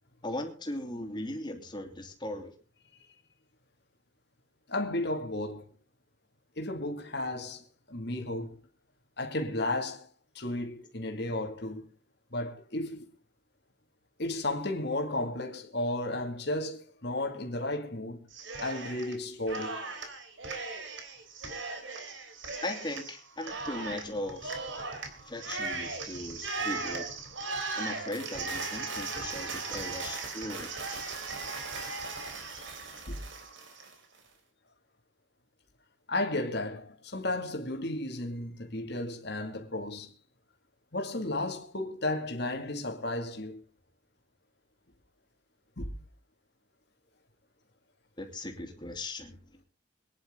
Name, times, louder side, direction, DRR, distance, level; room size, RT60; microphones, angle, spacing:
voice 1, 0.2-2.5 22.6-24.6 25.2-27.0 27.7-30.7 48.2-49.4, left 1 dB, 20° left, 3.0 m, -38 dB
voice 2, 4.7-5.7 6.6-8.6 9.2-10.1 10.3-11.8 12.3-13.1 14.2-18.3 18.6-19.8 33.1-33.2 36.1-40.1 40.9-43.6 45.8-45.9, left 2 dB, 55° left, 2.4 m, -33 dB
Cheering, 18.3-19.2 19.5-33.9, right 3 dB, 70° right, 3.6 m, -38 dB
23.5 x 10.5 x 3.8 m
head